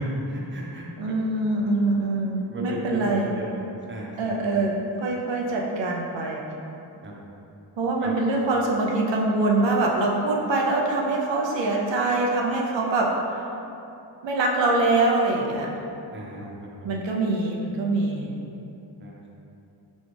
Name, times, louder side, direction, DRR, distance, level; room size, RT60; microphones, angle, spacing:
voice 1, 0.3-0.8 2.5-3.4 3.9-4.4 7.0-7.1 8.0-8.1 16.1-16.5 19.0-19.3, right 1 dB, 25° right, -3 dB, 0.7 m, -35 dB
voice 2, 1.0-3.3 4.2-6.4 7.8-13.4 14.2-15.7 16.8-18.3, right 2 dB, 85° right, -1 dB, 0.5 m, -24 dB
4.1 x 2.3 x 3.2 m, 2.8 s
cardioid pair, 55°, 43 cm